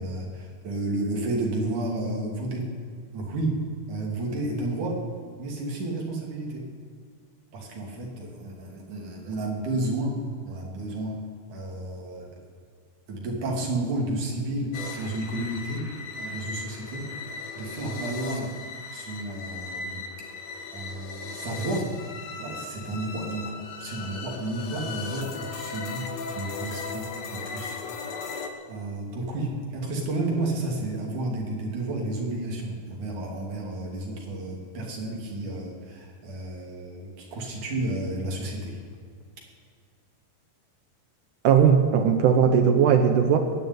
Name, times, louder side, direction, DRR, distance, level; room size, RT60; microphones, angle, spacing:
voice 1, 0.0-2.7 3.1-3.6 3.9-5.0 5.4-6.7 7.5-10.2 10.5-11.2 11.5-12.3 13.1-15.8 16.2-17.1 17.5-18.5 18.9-20.0 20.7-21.9 22.4-23.5 23.8-27.8 28.7-38.8, right 2 dB, 50° right, -1 dB, 3.8 m, -31 dB
sound 1, 14.7-28.5, left 4 dB, 85° left, 1.5 m, -37 dB
voice 2, 41.4-43.4, right 7 dB, 90° right, 5 dB, 1.7 m, -18 dB
21.0 x 7.1 x 9.4 m, 2.1 s
omnidirectional pair, 5.0 m